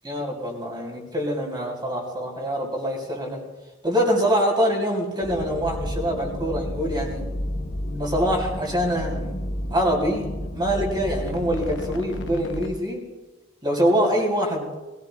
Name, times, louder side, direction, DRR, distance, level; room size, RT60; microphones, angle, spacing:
voice 1, 0.0-3.4 3.8-7.3 7.9-9.4 9.7-10.3 10.5-13.0 13.6-14.7, equal, 25° right, -2 dB, 3.4 m, -24 dB
sound 1, 5.2-12.7, left 1 dB, 65° left, 1.2 m, -31 dB
21.5 x 18.0 x 2.4 m, 1.1 s
head